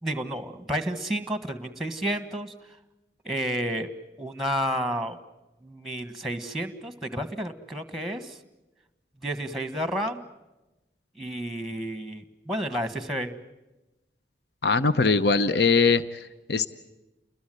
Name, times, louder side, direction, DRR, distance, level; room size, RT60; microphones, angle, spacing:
voice 1, 0.0-2.5 3.2-3.9 4.2-5.2 5.6-8.4 9.2-10.2 11.2-13.3, equal, ahead, 11 dB, 1.5 m, -31 dB
voice 2, 14.6-16.7, left 4 dB, 70° left, 13 dB, 0.8 m, -22 dB
29.5 x 21.5 x 7.8 m, 1.0 s
head